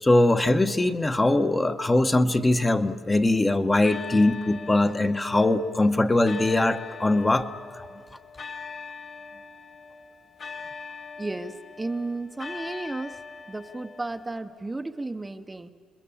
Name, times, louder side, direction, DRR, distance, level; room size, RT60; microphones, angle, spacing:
voice 1, 0.0-7.5, left 2 dB, 15° left, 7 dB, 1.0 m, -21 dB
sound 1, 1.8-3.3 3.8-14.4, left 4 dB, 45° left, 2.2 m, -41 dB
voice 2, 11.2-13.2 13.5-15.7, right 2 dB, 15° right, 7 dB, 0.8 m, -33 dB
30.0 x 20.5 x 7.1 m, 2.3 s
cardioid pair, 100°, 0 cm